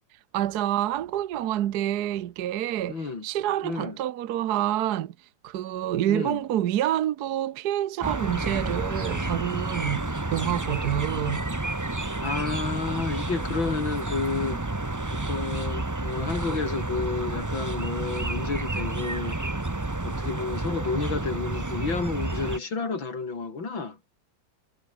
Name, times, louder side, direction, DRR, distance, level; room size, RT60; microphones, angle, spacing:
voice 1, 0.3-5.1 5.4-11.4, right 12 dB, 65° right, 1.2 m, -27 dB
voice 2, 2.9-3.3 3.6-4.0 6.1-6.4 12.2-19.6 20.0-24.0, left 4 dB, 85° left, 4.6 m, -31 dB
sound 1, 8.0-22.6, right 2 dB, 15° right, 0.8 m, -30 dB
omnidirectional pair, 2.1 m